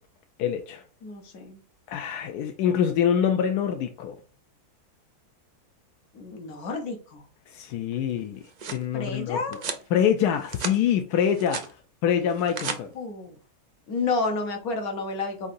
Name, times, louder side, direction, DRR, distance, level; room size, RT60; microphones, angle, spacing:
voice 1, 0.4-0.8 1.9-4.2 7.5-8.4 8.7-9.4 9.9-11.6 12.0-12.9, left 8 dB, 90° left, 1.1 m, -25 dB
voice 2, 1.0-1.6 6.1-7.2 8.9-9.6 12.9-13.4 13.9-15.5, left 3 dB, 70° left, 1.5 m, -30 dB
sound 1, 8.2-8.9 9.5-9.9 10.3-10.8 11.1-11.7 12.3-12.8, right 5 dB, 75° right, 0.4 m, -34 dB
4.8 x 4.1 x 2.6 m
omnidirectional pair, 1.6 m